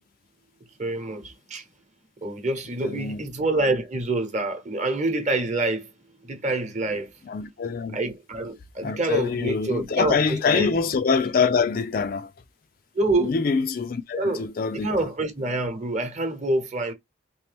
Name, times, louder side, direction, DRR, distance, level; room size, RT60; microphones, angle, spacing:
voice 1, 0.8-1.7 2.2-5.9 6.2-7.1 7.9-10.8 12.9-13.3 14.1-14.5 14.7-16.9, right 2 dB, 35° right, 0.9 m, -26 dB
voice 2, 2.8-3.2 7.3-8.0 8.8-12.3 13.2-14.9, left 5 dB, 45° left, 0.4 m, -25 dB
3.3 x 3.0 x 3.3 m
head